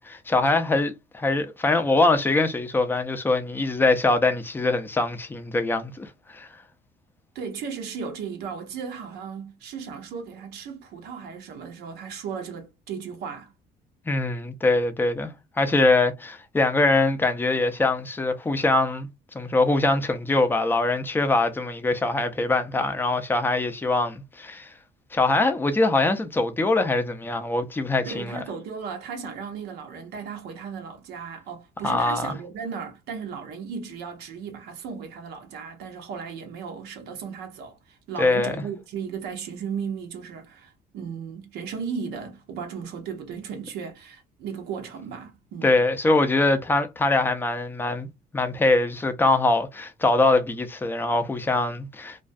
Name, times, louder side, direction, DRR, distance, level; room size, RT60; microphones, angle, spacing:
voice 1, 0.0-6.5 14.1-19.1 19.3-24.7 25.1-28.4 31.8-32.3 38.2-38.6 45.6-48.1 48.3-52.2, left 2 dB, 10° left, 0.4 m, -23 dB
voice 2, 7.3-13.5 28.0-45.7, right 6 dB, 75° right, 0.6 m, -35 dB
2.3 x 2.2 x 2.4 m
cardioid pair, 110°, 17 cm